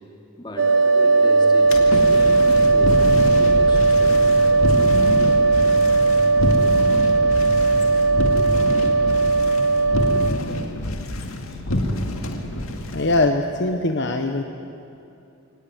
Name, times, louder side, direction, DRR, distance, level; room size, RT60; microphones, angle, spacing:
voice 1, 0.4-4.4, left 1 dB, 20° left, 1 dB, 2.7 m, -37 dB
sound 1, 0.6-10.3, right 3 dB, 60° right, 1.7 m, -17 dB
sound 2, 1.6-13.3, left 1 dB, 75° left, 2.2 m, -27 dB
voice 2, 12.9-14.4, left 2 dB, 55° left, 5 dB, 1.0 m, -21 dB
23.0 x 17.5 x 9.6 m, 2.7 s
head